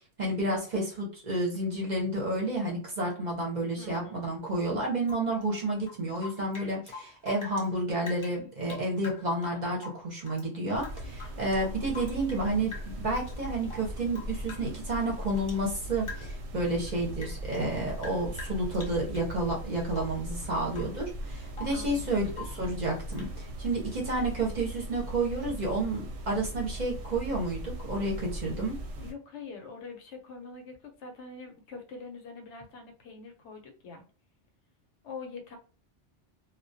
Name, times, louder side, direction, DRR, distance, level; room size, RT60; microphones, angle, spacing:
voice 1, 0.2-28.8, right 2 dB, 45° right, -2 dB, 0.6 m, -30 dB
voice 2, 3.8-4.3 21.7-22.2 29.0-34.0 35.0-35.6, left 4 dB, 75° left, 4 dB, 0.9 m, -44 dB
Rain / Drip, 5.0-7.7 8.0-10.5 10.8-12.4 12.7-13.3 13.6-15.7 16.0-16.5 16.8-19.3 19.9-20.3 20.7-21.0 21.3-21.8 22.3-22.7 23.1-23.4, left 3 dB, 35° left, 0.6 m, -46 dB
sound 1, 10.7-29.1, right 1 dB, 90° right, 0.9 m, -39 dB
2.2 x 2.1 x 2.6 m, 0.37 s
omnidirectional pair, 1.2 m